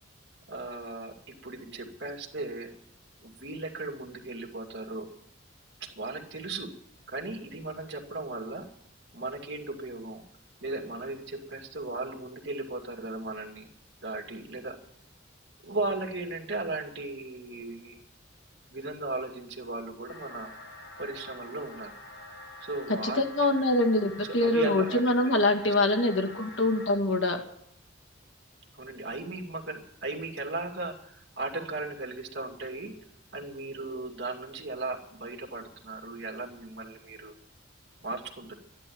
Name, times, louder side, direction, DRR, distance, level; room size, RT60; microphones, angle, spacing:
voice 1, 0.5-2.7 3.2-5.1 5.8-6.7 7.1-8.7 9.1-10.2 10.6-13.7 14.0-14.8 15.6-17.9 18.7-20.5 21.0-21.9 22.6-23.2 24.2-25.7 28.7-32.9 33.3-37.3 38.0-38.6, right 2 dB, 65° right, 1 dB, 2.3 m, -36 dB
sound 1, 20.1-26.9, left 2 dB, 55° left, 3.8 m, -46 dB
voice 2, 23.0-27.4, left 2 dB, 80° left, 5 dB, 2.0 m, -24 dB
12.5 x 10.5 x 8.7 m, 0.72 s
head